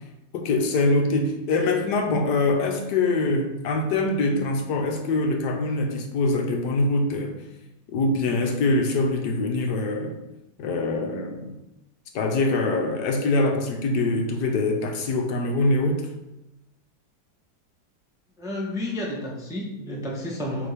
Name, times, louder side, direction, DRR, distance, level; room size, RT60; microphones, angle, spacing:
voice 1, 0.3-7.4 7.9-10.2 10.6-11.6 12.1-16.1, left 2 dB, 80° left, 4 dB, 1.4 m, -24 dB
voice 2, 18.4-20.7, left 1 dB, 5° right, -2 dB, 0.6 m, -31 dB
8.5 x 3.4 x 3.4 m, 0.95 s
omnidirectional pair, 1.8 m